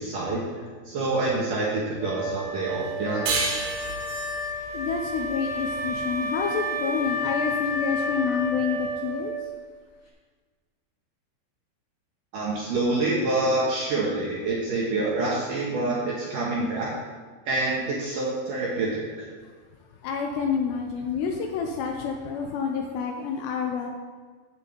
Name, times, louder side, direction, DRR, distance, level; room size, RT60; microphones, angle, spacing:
voice 1, 0.0-3.4 12.3-16.9 17.5-19.3, right 2 dB, 65° right, -4 dB, 2.2 m, -27 dB
Wind instrument woodwind instrument, 2.0-9.6, left 1 dB, 30° left, 1.1 m, -31 dB
sound 1, 3.3-6.4, right 4 dB, 85° right, 3.6 m, -31 dB
voice 2, 4.7-9.3 20.0-23.9, left 6 dB, 80° left, 2 dB, 2.6 m, -28 dB
8.5 x 6.7 x 8.2 m, 1.5 s
omnidirectional pair, 5.5 m